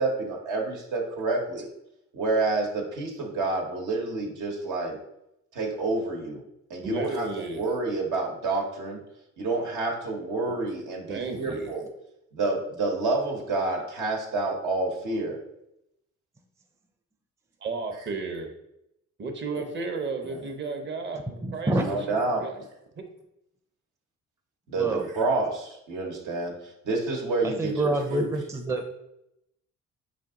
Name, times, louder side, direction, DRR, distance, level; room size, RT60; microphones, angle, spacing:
voice 1, 0.0-1.7 2.1-5.0 5.5-6.4 6.7-7.3 7.5-9.0 9.4-11.9 12.3-15.4 19.5-19.6 20.3-20.4 21.8-22.5 24.7-26.5 26.8-28.3, right 3 dB, 80° right, -1 dB, 1.2 m, -28 dB
voice 2, 6.8-7.6 10.5-10.6 11.1-11.7 17.6-18.5 19.2-22.6 23.0-23.1, right 4 dB, 40° right, 4 dB, 0.8 m, -33 dB
voice 3, 21.4-21.8 24.8-25.1 27.4-28.9, right 2 dB, 10° right, 4 dB, 0.5 m, -27 dB
5.1 x 2.6 x 3.7 m, 0.83 s
cardioid pair, 90°, 30 cm